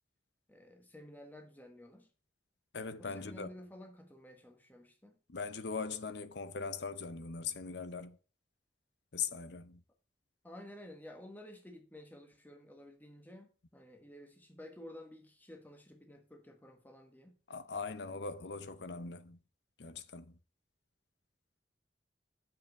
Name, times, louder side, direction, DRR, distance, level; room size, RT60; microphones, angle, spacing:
voice 1, 0.5-2.1 3.0-5.2 10.4-17.4, left 1 dB, 10° left, 1.3 m, -52 dB
voice 2, 2.7-3.5 5.3-8.2 9.1-9.8 17.5-19.4 19.8-20.4, left 5 dB, 70° left, 0.7 m, -40 dB
7.2 x 5.7 x 6.3 m
head